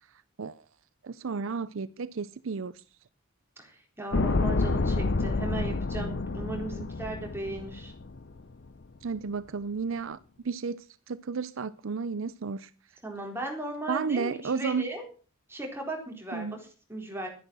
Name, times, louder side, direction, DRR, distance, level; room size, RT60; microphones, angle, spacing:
voice 1, 1.0-2.8 9.0-10.2 10.4-12.7 13.9-14.9 16.3-16.6, right 5 dB, 65° right, 0.5 m, -32 dB
voice 2, 3.6-7.9 13.0-15.0 15.5-17.3, right 2 dB, 10° right, 3.9 m, -37 dB
sound 1, 4.1-8.4 8.7-8.8, left 3 dB, 55° left, 0.7 m, -29 dB
12.5 x 10.0 x 6.3 m
head